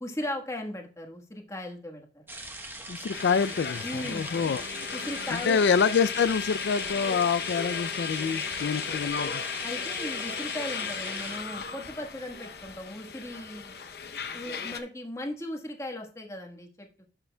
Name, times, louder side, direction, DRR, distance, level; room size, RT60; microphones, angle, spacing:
voice 1, 0.0-2.2 3.8-4.3 4.9-5.6 9.6-13.7 14.3-17.0, left 1 dB, 15° left, 1.3 m, -37 dB
sound 1, 2.3-11.4, right 2 dB, 10° right, 1.1 m, -41 dB
voice 2, 2.9-4.6 5.3-9.4, left 6 dB, 80° left, 0.4 m, -26 dB
sound 2, 3.1-14.8, left 6 dB, 65° left, 0.7 m, -35 dB
11.5 x 6.8 x 2.2 m
head